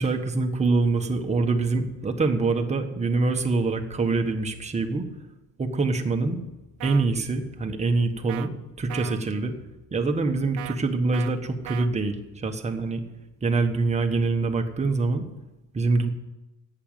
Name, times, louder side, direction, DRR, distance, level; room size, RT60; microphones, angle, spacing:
voice 1, 0.0-5.1 5.6-6.4 6.8-8.5 8.8-9.5 9.9-13.0 13.4-15.2 15.7-16.1, right 3 dB, 20° right, 5 dB, 1.4 m, -25 dB
sound 1, 6.8-7.1 8.3-8.5 8.9-9.2 10.6-10.8 11.1-11.3 11.7-11.9, right 14 dB, 60° right, 0.8 m, -37 dB
11.5 x 8.9 x 9.0 m, 1.0 s
cardioid pair, 135°, 34 cm